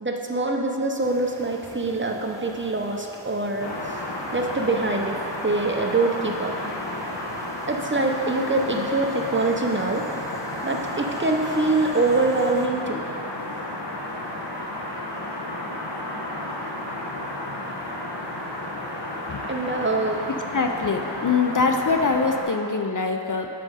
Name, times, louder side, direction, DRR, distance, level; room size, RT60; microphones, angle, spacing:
voice 1, 0.0-4.0 4.3-5.2 5.4-6.5 7.7-10.0 10.6-13.0 19.5-20.2, right 2 dB, 25° right, 2 dB, 0.7 m, -24 dB
sound 1, 1.0-12.7, equal, 5° left, 0.9 m, -43 dB
sound 2, 3.6-22.4, left 1 dB, 70° left, 1.0 m, -32 dB
voice 2, 20.5-23.5, left 4 dB, 45° left, 4 dB, 0.5 m, -23 dB
7.7 x 5.2 x 4.8 m, 2.7 s
wide cardioid pair, 50°, 43 cm